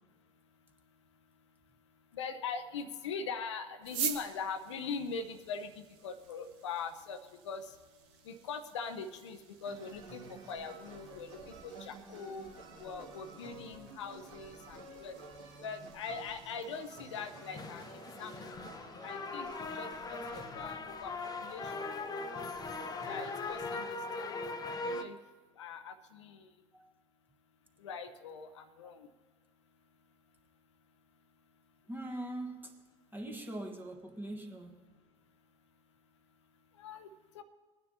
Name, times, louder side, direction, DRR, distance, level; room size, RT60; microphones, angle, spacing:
voice 1, 2.1-7.2 7.4-7.7 8.2-12.4 12.8-15.2 15.6-18.3 19.0-19.5 19.7-21.1 21.4-21.9 23.1-23.8 24.2-24.3 24.8-25.2 25.6-26.5 27.8-29.1 36.8-37.1 37.3-37.4, left 5 dB, 70° left, 9 dB, 0.7 m, -42 dB
sound 1, 3.8-18.6, right 8 dB, 55° right, 1.1 m, -47 dB
sound 2, 9.6-23.6, right 3 dB, 75° right, 2.1 m, -52 dB
sound 3, 17.2-25.0, left 3 dB, 25° left, 0.7 m, -40 dB
voice 2, 31.9-32.7 33.1-34.9, right 1 dB, 10° right, 3 dB, 1.2 m, -42 dB
19.5 x 9.6 x 2.8 m, 1.4 s
figure-of-eight pair, 65°, 16 cm